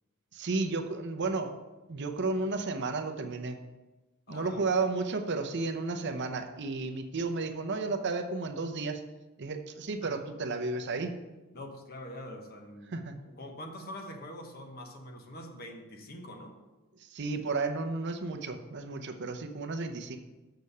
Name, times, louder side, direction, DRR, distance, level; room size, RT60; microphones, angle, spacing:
voice 1, 0.3-1.5 1.9-3.6 4.3-9.0 9.4-11.1 12.9-13.2 17.0-20.2, right 3 dB, 50° right, 6 dB, 0.7 m, -33 dB
voice 2, 4.3-4.6 10.0-10.1 11.5-16.6, left 1 dB, 45° left, 4 dB, 1.1 m, -44 dB
6.8 x 6.6 x 5.4 m, 1.1 s
head